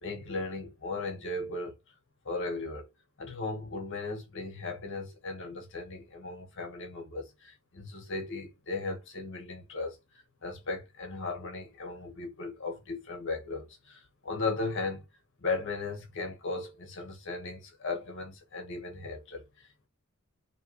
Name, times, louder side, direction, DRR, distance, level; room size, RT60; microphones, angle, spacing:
voice 1, 0.0-2.0 2.2-2.9 3.2-15.0 15.4-19.9, left 3 dB, 60° left, 1.4 m, -37 dB
4.6 x 3.1 x 3.0 m
head